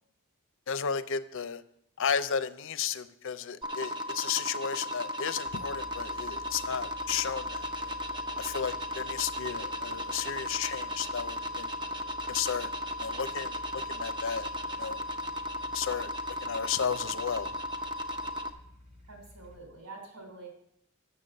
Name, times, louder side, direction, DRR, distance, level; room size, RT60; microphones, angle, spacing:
voice 1, 0.7-1.6 2.0-7.9 8.4-11.7 12.3-12.7 13.0-13.6 13.9-14.5 14.8-15.0 15.7-16.1 16.4-17.5, left 7 dB, 60° left, 13 dB, 0.5 m, -33 dB
sound 1, 3.6-18.5, left 1 dB, 20° right, 0.6 m, -36 dB
sound 2, 5.5-19.6, left 1 dB, 45° right, 1.5 m, -52 dB
voice 2, 19.1-20.5, right 3 dB, 70° right, 1 dB, 3.2 m, -46 dB
6.9 x 6.8 x 7.6 m, 0.73 s
head